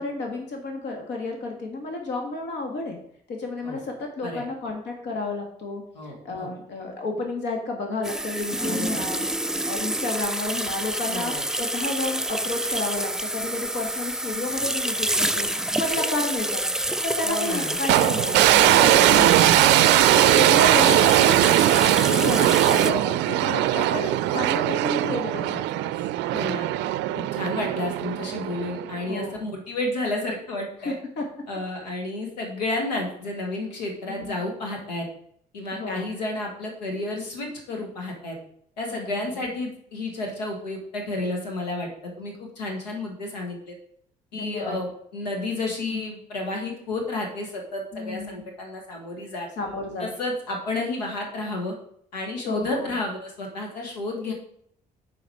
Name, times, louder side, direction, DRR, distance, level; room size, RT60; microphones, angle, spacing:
voice 1, 0.0-3.0 3.3-9.2 9.6-16.6 17.0-19.7 20.1-21.4 22.1-25.9 29.1-29.4 30.8-31.2 34.1-34.3 35.7-36.1 38.9-39.4 44.3-44.8 45.9-46.0 47.9-48.4 49.6-50.1 52.5-52.9, left 2 dB, 55° left, 2 dB, 1.9 m, -31 dB
voice 2, 5.9-6.5 8.6-9.1 11.1-11.4 17.2-17.8 18.6-19.3 20.1-20.6 26.3-26.7 27.2-30.9 31.5-35.1 35.5-38.4 38.8-43.7 44.3-49.5 50.0-51.7 52.1-54.3, left 2 dB, 80° left, 2 dB, 1.6 m, -31 dB
sound 1, 8.0-22.9, right 1 dB, 5° right, 0.5 m, -28 dB
sound 2, 17.9-29.1, right 14 dB, 60° right, 0.5 m, -20 dB
8.9 x 4.7 x 4.7 m, 0.66 s
figure-of-eight pair, 45°, 21 cm